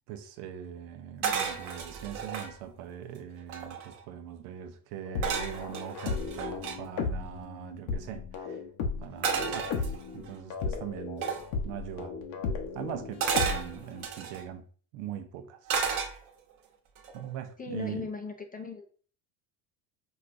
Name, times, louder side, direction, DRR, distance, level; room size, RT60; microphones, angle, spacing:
voice 1, 0.1-8.6 9.0-11.3 11.6-12.2 12.7-14.7 14.9-15.8 17.1-18.1, right 10 dB, 90° right, 0.7 m, -41 dB
sound 1, 1.2-2.5 3.1-3.2 3.4-4.0 5.2-6.8 9.2-10.3 11.2-11.5 13.2-14.4 15.7-16.5 17.0-17.3, right 6 dB, 70° right, 1.1 m, -32 dB
sound 2, 5.1-14.1, left 4 dB, 70° left, 0.9 m, -35 dB
voice 2, 17.6-18.9, left 5 dB, 20° left, 0.3 m, -38 dB
5.1 x 2.3 x 2.5 m
supercardioid pair, 90°, 49 cm